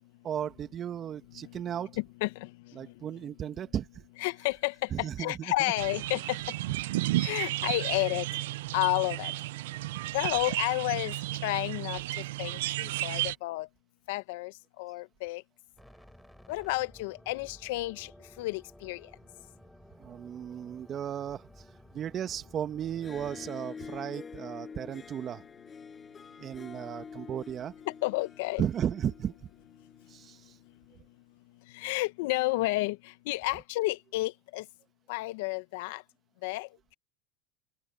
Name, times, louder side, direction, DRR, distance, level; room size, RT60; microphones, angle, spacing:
voice 1, 0.2-1.9 2.7-3.9 4.9-5.5 6.7-6.8 20.0-21.4 21.9-25.4 26.4-27.7 28.6-29.3 30.1-30.4, right 9 dB, 40° right, 2.1 m, -35 dB
voice 2, 2.0-2.5 4.2-6.4 7.2-8.3 8.7-9.3 10.1-11.1 11.4-12.0 12.4-13.7 14.1-14.5 14.8-15.4 16.5-18.1 18.4-19.0 27.9-28.6 31.7-33.0 33.3-34.6 35.1-36.0 36.4-36.7, left 21 dB, 75° left, 1.4 m, -31 dB
sound 1, 5.8-13.4, right 18 dB, 80° right, 0.6 m, -33 dB
sound 2, 15.8-23.5, equal, ahead, 3.7 m, -55 dB
Harp, 22.9-30.3, left 5 dB, 25° left, 8.0 m, -47 dB
open air
hypercardioid pair, 100°, 0 cm